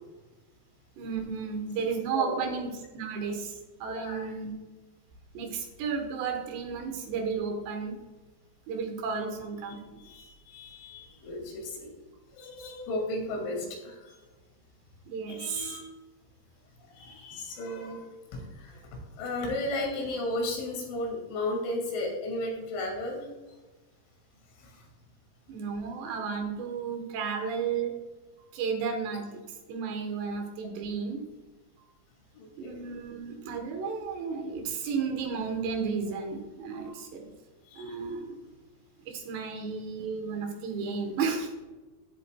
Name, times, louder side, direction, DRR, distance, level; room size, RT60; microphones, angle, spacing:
voice 1, 1.0-4.5 5.3-8.0 8.7-10.0 15.1-15.8 25.5-27.9 28.5-29.4 29.7-31.2 32.6-37.3 37.8-38.4 39.1-41.5, right 5 dB, 75° right, 5 dB, 3.0 m, -33 dB
voice 2, 2.1-2.5 3.9-4.3 9.7-9.8 10.0-11.9 12.3-14.2 15.3-15.8 16.9-18.1 18.3-18.8 19.2-23.3 24.6-24.9 32.3-32.9 37.7-38.0, left 2 dB, 80° left, 0 dB, 4.8 m, -34 dB
14.5 x 8.1 x 2.2 m, 1.2 s
omnidirectional pair, 5.4 m